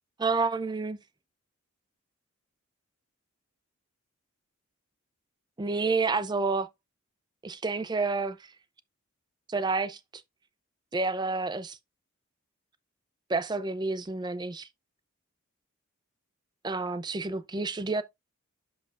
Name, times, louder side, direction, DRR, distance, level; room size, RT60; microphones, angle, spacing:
voice 1, 0.2-1.0 5.6-6.7 7.4-8.4 9.5-10.0 10.9-11.8 13.3-14.7 16.6-18.0, right 3 dB, 20° right, 0.4 m, -29 dB
10.5 x 5.5 x 2.4 m
head